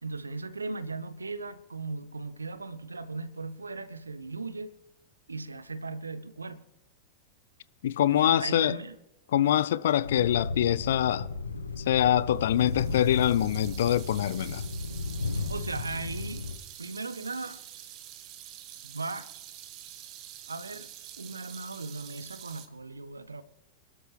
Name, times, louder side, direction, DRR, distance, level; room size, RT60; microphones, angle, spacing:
voice 1, 0.0-4.7 5.3-6.6 8.1-9.0 15.5-16.5 16.8-17.6 18.8-19.3 20.5-20.9 21.2-23.4, right 3 dB, 80° right, 0.7 m, -37 dB
voice 2, 7.8-8.8 9.3-11.3 11.8-14.6, left 11 dB, 60° left, 0.5 m, -24 dB
sound 1, 10.0-16.6, left 3 dB, 80° left, 1.2 m, -34 dB
sound 2, 12.4-22.7, right 11 dB, 40° right, 1.5 m, -47 dB
26.0 x 12.0 x 3.4 m
figure-of-eight pair, 90°, 0 cm